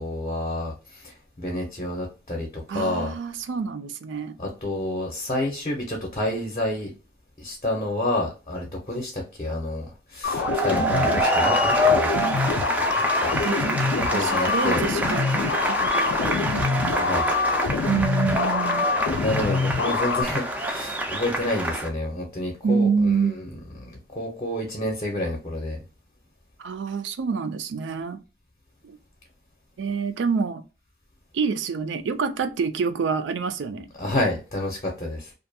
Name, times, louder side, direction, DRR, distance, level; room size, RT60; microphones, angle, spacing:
voice 1, 0.0-3.1 4.4-6.9 7.4-12.1 12.5-12.6 13.0-13.3 13.8-14.8 17.0-17.3 19.2-23.4 23.8-25.8 34.0-35.3, left 1 dB, 35° left, 0.6 m, -29 dB
voice 2, 2.7-4.4 13.2-16.7 17.9-18.9 22.6-23.3 26.6-28.2 28.8-29.0 29.8-30.6 31.3-33.9, right 5 dB, 90° right, 0.4 m, -27 dB
sound 1, 10.2-20.2, left 5 dB, 85° left, 0.4 m, -26 dB
sound 2, 10.2-21.9, right 1 dB, 10° right, 0.3 m, -26 dB
2.5 x 2.2 x 2.5 m
head